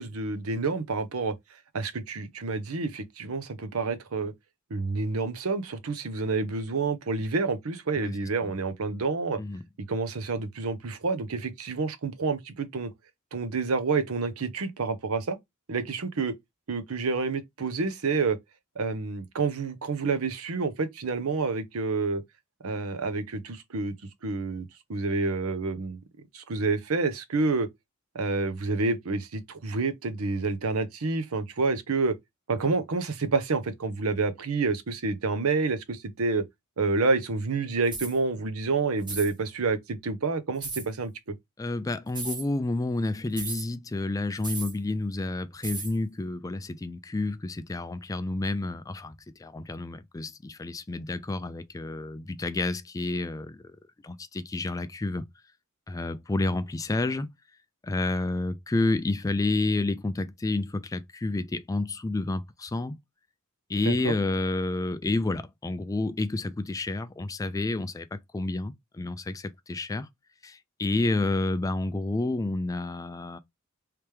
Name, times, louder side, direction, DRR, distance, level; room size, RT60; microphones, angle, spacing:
voice 1, 0.0-1.3 1.7-4.3 4.7-9.4 9.9-12.9 13.3-15.4 15.7-16.3 16.7-18.4 18.8-22.2 22.6-23.9 24.2-24.6 24.9-26.0 26.3-27.7 28.1-32.1 32.5-36.4 36.8-41.3 63.8-64.1, right 4 dB, 70° right, 0.7 m, -28 dB
sound 1, 37.9-38.2 39.0-39.3 40.6-40.9 42.1-42.5 43.4-43.7 44.4-44.8 45.6-45.9, right 3 dB, 20° right, 0.9 m, -35 dB
voice 2, 41.6-49.1 49.4-53.6 54.0-55.2 55.9-57.3 57.8-63.0 63.7-70.1 70.4-73.4, left 2 dB, 15° left, 0.3 m, -30 dB
3.3 x 3.0 x 3.3 m
head